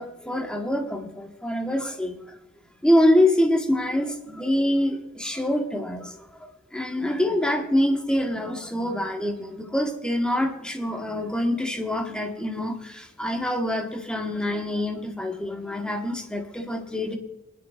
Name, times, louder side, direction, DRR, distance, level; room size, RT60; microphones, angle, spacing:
voice 1, 0.0-2.2 2.8-6.3 6.7-17.2, left 1 dB, 5° left, 3 dB, 1.2 m, -25 dB
21.0 x 10.5 x 2.4 m, 0.90 s
head